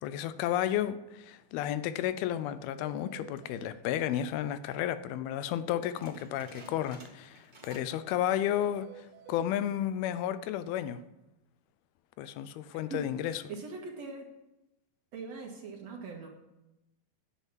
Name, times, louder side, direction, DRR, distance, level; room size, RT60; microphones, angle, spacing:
voice 1, 0.0-11.0 12.2-13.4, left 11 dB, 85° left, 13 dB, 2.6 m, -32 dB
sound 1, 1.5-1.7 1.9-2.0 2.3-2.4 2.8-3.8 8.5-9.5, right 11 dB, 80° right, 2.2 m, -52 dB
sound 2, 6.0-8.0 8.3-8.7 9.2-9.3 9.9-10.3, right 2 dB, 20° right, 1.4 m, -54 dB
voice 2, 13.5-14.3 15.1-16.3, right 4 dB, 55° right, 1 dB, 2.4 m, -41 dB
10.0 x 8.1 x 7.3 m, 0.95 s
omnidirectional pair, 4.3 m